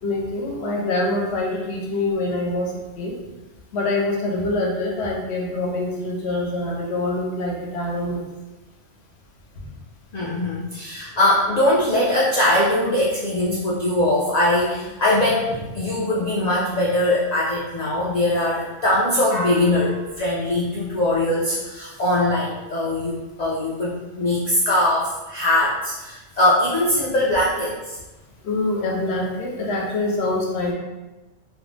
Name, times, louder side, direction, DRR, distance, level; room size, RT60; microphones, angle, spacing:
voice 1, 0.0-3.2 3.7-8.2 28.4-30.7, left 2 dB, 65° left, -1 dB, 0.8 m, -25 dB
voice 2, 10.1-28.0, left 1 dB, 85° left, -6 dB, 0.3 m, -21 dB
2.5 x 2.0 x 3.1 m, 1.1 s
omnidirectional pair, 1.3 m